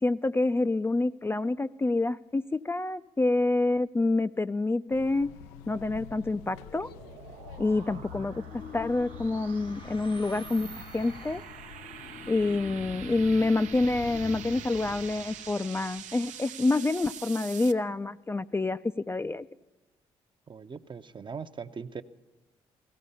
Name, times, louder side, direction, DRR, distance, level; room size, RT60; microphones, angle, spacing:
voice 1, 0.0-5.3 5.7-6.9 7.6-11.4 12.3-18.8 19.1-19.5, left 2 dB, 20° left, 12 dB, 0.4 m, -27 dB
sound 1, 4.9-14.6, left 7 dB, 90° left, 0.5 m, -48 dB
sound 2, 6.0-17.7, right 9 dB, 75° right, 0.7 m, -46 dB
sound 3, 7.2-16.8, left 5 dB, 40° left, 0.8 m, -46 dB
voice 2, 7.9-8.3 20.5-22.0, right 5 dB, 40° right, 10 dB, 0.8 m, -41 dB
17.0 x 14.5 x 5.5 m, 1.2 s
hypercardioid pair, 50°, 13 cm